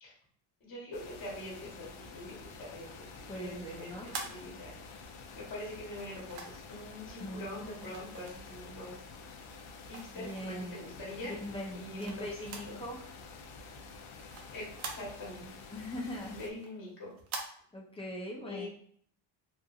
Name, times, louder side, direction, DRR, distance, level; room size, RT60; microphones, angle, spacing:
voice 1, 0.6-4.7 5.3-9.1 9.8-11.3 11.7-12.8 14.5-15.5 16.3-17.1 18.5-18.7, left 1 dB, 45° left, -4 dB, 1.2 m, -44 dB
sound 1, 0.9-16.5, left 4 dB, 80° left, 0.6 m, -49 dB
voice 2, 3.3-4.2 7.2-7.6 10.1-10.9 11.4-13.1 15.7-16.4 17.7-18.7, left 1 dB, 10° left, -3 dB, 0.5 m, -41 dB
sound 2, 3.6-5.1 5.9-6.8 7.8-8.9 9.3-10.7 11.2-12.8 13.1-13.2 13.6-15.5 15.9-17.5, right 4 dB, 85° right, 0.7 m, -45 dB
2.8 x 2.5 x 2.4 m, 0.62 s
cardioid pair, 110°, 48 cm